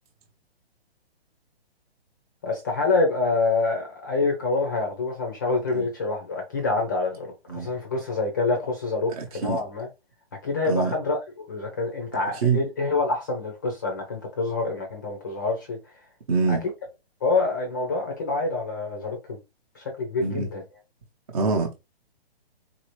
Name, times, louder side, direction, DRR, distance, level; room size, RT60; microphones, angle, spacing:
voice 1, 2.4-9.9 10.4-15.8 16.5-16.6 17.2-19.4 19.7-20.6, left 3 dB, 20° left, 0.6 m, -26 dB
voice 2, 9.2-9.6 10.7-10.9 12.4-12.6 16.3-16.6 20.2-20.5 21.3-21.8, right 4 dB, 35° right, 0.8 m, -24 dB
4.1 x 2.7 x 3.1 m
hypercardioid pair, 170°, 32 cm